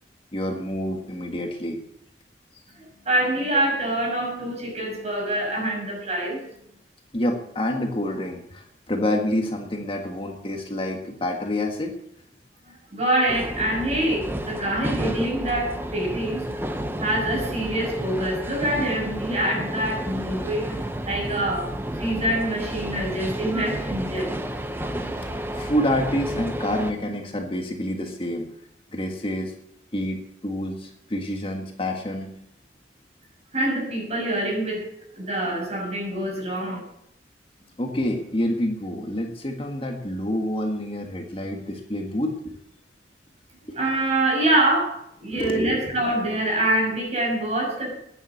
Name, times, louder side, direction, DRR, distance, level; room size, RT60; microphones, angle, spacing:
voice 1, 0.3-1.8 7.1-11.9 25.5-28.5 28.9-29.5 29.9-32.3 37.8-42.4 43.7-43.8 45.3-45.8, left 1 dB, 30° left, 3 dB, 1.6 m, -27 dB
voice 2, 2.8-6.5 12.9-16.5 17.0-24.4 33.5-34.9 35.2-36.8 43.8-47.9, right 1 dB, 40° right, -1 dB, 6.3 m, -25 dB
sound 1, 13.3-26.9, equal, 15° right, 1.0 m, -31 dB
11.0 x 10.0 x 7.8 m, 0.75 s
head